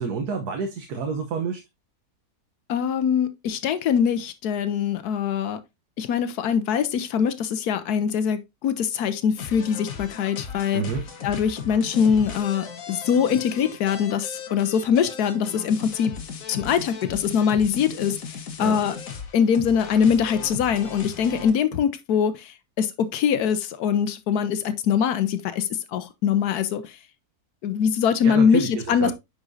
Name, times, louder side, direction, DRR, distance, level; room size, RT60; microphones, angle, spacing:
voice 1, 0.0-1.6 10.7-11.0 18.6-18.8 28.2-29.1, right 5 dB, 75° right, 1.4 m, -28 dB
voice 2, 2.7-5.6 6.0-10.8 11.2-16.1 16.5-19.0 19.3-27.0 27.6-29.1, left 7 dB, 80° left, 1.2 m, -23 dB
sound 1, 9.4-21.5, left 6 dB, 60° left, 1.5 m, -37 dB
9.7 x 5.1 x 2.6 m
omnidirectional pair, 1.7 m